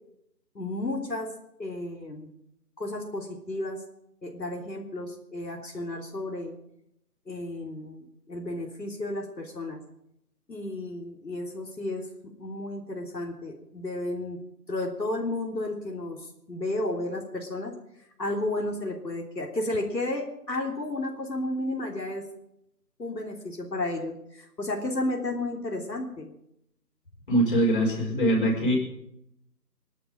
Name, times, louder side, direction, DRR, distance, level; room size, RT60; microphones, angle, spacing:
voice 1, 0.6-1.3 1.6-2.3 2.8-3.8 4.2-6.5 7.3-9.8 10.5-12.1 12.4-14.4 14.7-17.7 18.2-22.2 23.0-26.3, left 2 dB, 85° left, 1 dB, 3.6 m, -32 dB
voice 2, 27.3-28.8, right 1 dB, 30° left, -2 dB, 5.5 m, -23 dB
21.5 x 11.5 x 5.1 m, 0.78 s
figure-of-eight pair, 170°, 49 cm